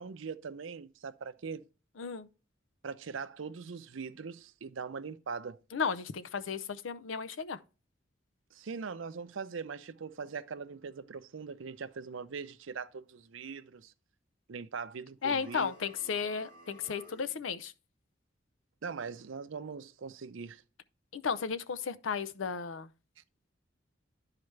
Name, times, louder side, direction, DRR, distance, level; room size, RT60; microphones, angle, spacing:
voice 1, 0.0-1.6 2.8-5.6 8.5-13.9 14.5-15.7 18.8-20.6, right 5 dB, 85° right, 0.6 m, -41 dB
voice 2, 2.0-2.3 5.7-7.6 15.2-17.7 21.1-22.9, left 6 dB, 90° left, 0.6 m, -34 dB
sound 1, 15.2-17.4, equal, 35° left, 4.0 m, -55 dB
11.5 x 4.8 x 3.2 m
head